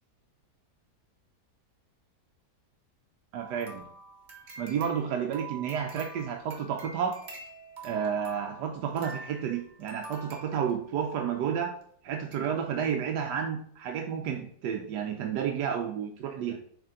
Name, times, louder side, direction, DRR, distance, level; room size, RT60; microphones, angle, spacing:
voice 1, 3.3-3.9 4.6-7.2 7.8-11.7 12.0-16.6, right 8 dB, 80° right, 3 dB, 1.3 m, -31 dB
sound 1, 3.4-11.1 11.8-11.9 12.3-12.5 12.8-12.9, right 3 dB, 40° right, 1.7 m, -46 dB
8.0 x 3.6 x 3.7 m, 0.62 s
omnidirectional pair, 1.8 m